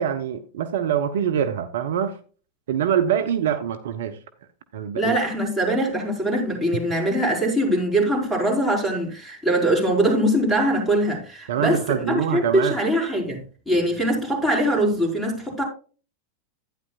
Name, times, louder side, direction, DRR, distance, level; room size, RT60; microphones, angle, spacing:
voice 1, 0.0-2.2 2.7-4.2 4.7-5.2 11.5-12.8, right 9 dB, 60° right, 0.7 m, -24 dB
voice 2, 5.0-15.6, right 1 dB, ahead, 4.4 m, -22 dB
11.5 x 9.7 x 2.4 m
figure-of-eight pair, 90°, 0 cm